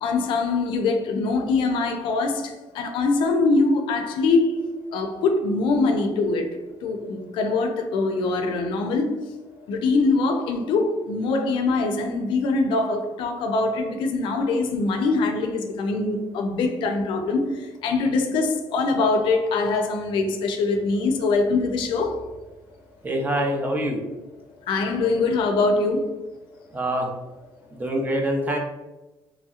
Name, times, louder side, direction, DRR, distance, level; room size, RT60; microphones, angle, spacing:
voice 1, 0.0-4.6 4.9-9.3 9.7-22.3 24.6-26.2, left 3 dB, 75° left, 0.4 m, -23 dB
voice 2, 23.0-24.0 26.7-27.1 27.7-28.6, right 1 dB, 20° right, 0.5 m, -25 dB
3.0 x 2.8 x 2.3 m
cardioid pair, 125°, 8 cm